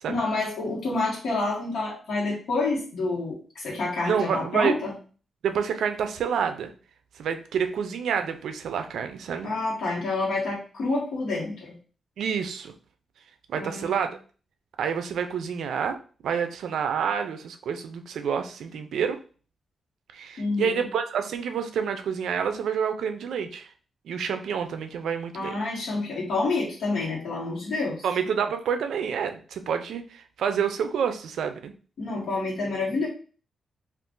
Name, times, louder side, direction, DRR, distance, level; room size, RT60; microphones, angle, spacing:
voice 1, 0.1-4.9 9.4-11.7 13.5-14.0 20.4-20.9 25.3-28.0 32.0-33.1, left 3 dB, 70° left, -6 dB, 1.1 m, -28 dB
voice 2, 4.1-4.8 5.4-6.7 7.2-9.5 12.2-12.7 13.5-14.1 14.8-16.0 16.2-19.2 20.1-23.7 24.1-25.6 28.0-31.7, right 7 dB, 85° right, 8 dB, 0.4 m, -28 dB
2.5 x 2.4 x 3.6 m, 0.39 s
wide cardioid pair, 160°, 0 cm